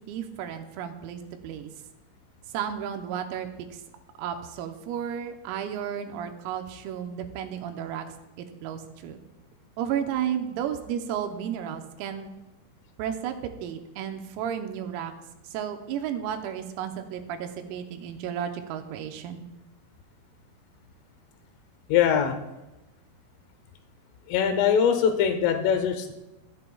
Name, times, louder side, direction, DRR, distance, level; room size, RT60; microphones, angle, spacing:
voice 1, 0.1-1.7 2.5-3.5 4.2-8.1 8.4-9.2 9.8-12.3 13.0-15.1 15.5-19.4, right 9 dB, 90° right, 5 dB, 3.6 m, -33 dB
voice 2, 21.9-22.4 24.3-26.1, left 8 dB, 80° left, 6 dB, 3.4 m, -22 dB
24.5 x 8.5 x 2.3 m, 0.99 s
omnidirectional pair, 5.9 m